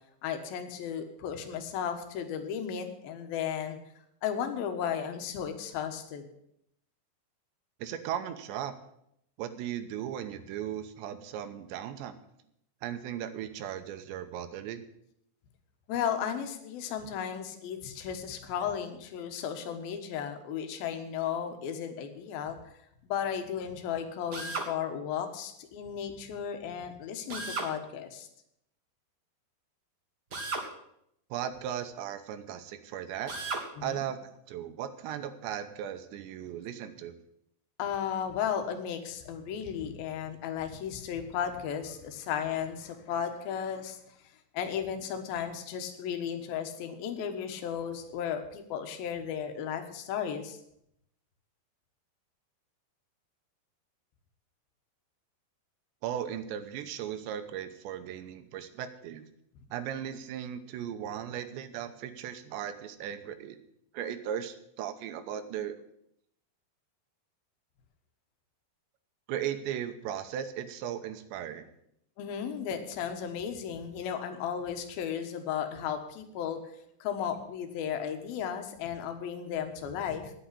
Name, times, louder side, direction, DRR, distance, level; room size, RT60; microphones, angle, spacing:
voice 1, 0.2-3.8 4.2-6.3 15.9-22.6 23.0-28.3 33.8-34.0 37.8-44.0 44.5-50.6 72.2-76.6 77.0-80.3, left 8 dB, 65° left, 6 dB, 3.0 m, -34 dB
voice 2, 7.8-8.7 9.4-12.2 12.8-14.8 31.3-33.3 33.8-37.1 56.0-59.2 59.7-63.6 63.9-65.8 69.3-71.7, right 10 dB, 85° right, 10 dB, 3.2 m, -37 dB
Drill, 24.3-24.7 27.3-27.7 30.3-30.7 33.3-33.7, right 3 dB, 50° right, 1.2 m, -34 dB
10.0 x 8.6 x 9.7 m, 0.76 s
omnidirectional pair, 5.0 m